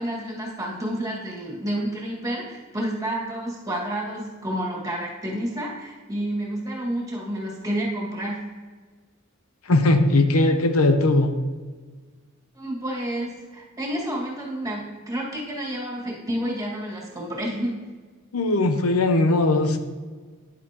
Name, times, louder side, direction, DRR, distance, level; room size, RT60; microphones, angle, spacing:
voice 1, 0.0-8.4 12.5-17.7, right 1 dB, 15° right, -4 dB, 2.0 m, -30 dB
voice 2, 9.7-11.3 18.3-19.8, left 2 dB, 90° left, 7 dB, 0.8 m, -19 dB
10.0 x 8.4 x 3.0 m, 1.4 s
head